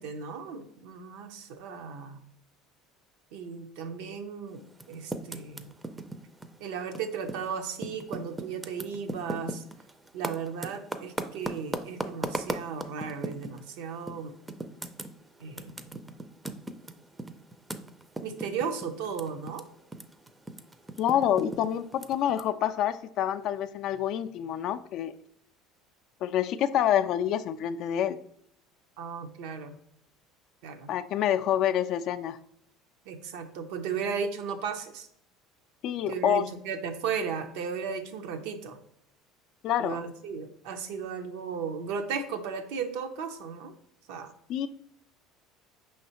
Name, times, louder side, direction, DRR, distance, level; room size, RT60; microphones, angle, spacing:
voice 1, 0.0-2.2 3.3-5.7 6.6-9.6 10.1-14.3 15.4-15.8 16.1-16.2 18.2-19.6 29.0-29.8 30.6-30.9 33.1-35.1 36.1-38.8 39.8-43.7 44.1-44.3, right 6 dB, 75° right, 7 dB, 0.5 m, -35 dB
Typing, 4.7-7.5 7.8-13.6 14.1-14.2 14.5-19.6 19.9-22.4, right 2 dB, 15° right, 0.4 m, -37 dB
voice 2, 21.0-25.1 26.2-28.2 30.9-32.4 35.8-36.4 39.6-40.0 44.5-44.7, left 10 dB, 60° left, 10 dB, 0.3 m, -27 dB
5.4 x 3.2 x 2.8 m, 0.71 s
hypercardioid pair, 80°, 0 cm